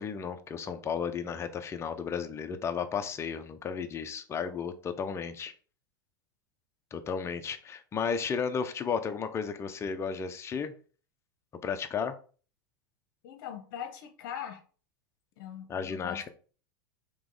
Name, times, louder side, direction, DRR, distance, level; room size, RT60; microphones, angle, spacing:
voice 1, 0.0-5.5 6.9-10.7 11.6-12.1 15.7-16.3, left 6 dB, 25° left, 0.6 m, -33 dB
voice 2, 13.2-14.6 15.4-16.3, left 9 dB, 60° left, 0.9 m, -41 dB
3.5 x 3.0 x 3.9 m
hypercardioid pair, 115°, 11 cm